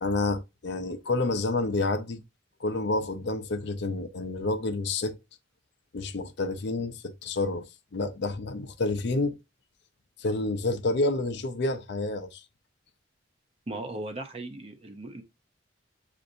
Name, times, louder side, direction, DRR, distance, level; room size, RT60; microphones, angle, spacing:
voice 1, 0.0-2.2 2.6-5.2 5.9-7.6 7.9-9.4 10.2-12.4, left 2 dB, 55° left, 0.5 m, -29 dB
voice 2, 13.7-15.2, right 2 dB, 30° right, 0.5 m, -37 dB
7.6 x 2.5 x 2.6 m
head